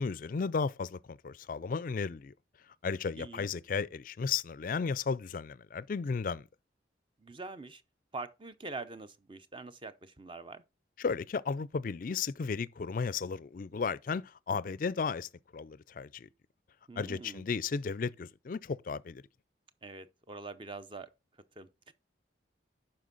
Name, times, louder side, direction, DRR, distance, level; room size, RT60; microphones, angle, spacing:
voice 1, 0.0-2.3 2.8-6.4 11.0-16.3 17.0-19.2, left 5 dB, 45° left, 0.4 m, -34 dB
voice 2, 3.2-3.5 7.2-7.8 8.1-10.6 16.9-17.4 19.8-21.1 21.6-21.9, right 3 dB, 25° right, 0.6 m, -44 dB
11.0 x 4.5 x 3.9 m
head